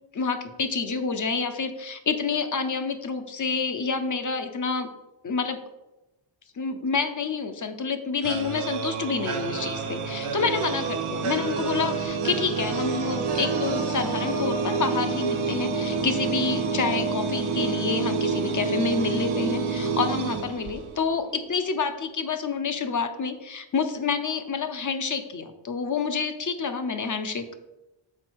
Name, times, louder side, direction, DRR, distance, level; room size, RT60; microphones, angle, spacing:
voice 1, 0.1-4.9 5.2-5.6 6.6-27.5, left 5 dB, 40° left, 8 dB, 0.7 m, -28 dB
sound 1, 8.2-21.1, right 5 dB, 90° right, 1.1 m, -28 dB
6.5 x 3.9 x 6.2 m, 0.99 s
wide cardioid pair, 115°, 49 cm